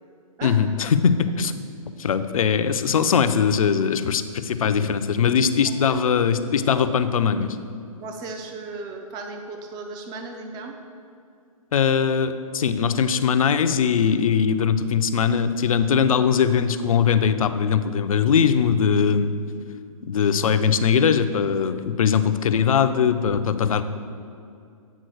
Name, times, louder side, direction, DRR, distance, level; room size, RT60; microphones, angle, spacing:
voice 1, 0.4-1.5 2.0-7.5 11.7-19.3 20.0-23.8, left 7 dB, 75° left, 10 dB, 0.5 m, -21 dB
voice 2, 5.7-6.0 6.7-6.9 8.0-10.8, right 3 dB, 20° right, 5 dB, 0.6 m, -36 dB
9.2 x 3.8 x 6.3 m, 2.4 s
hypercardioid pair, 135°, 18 cm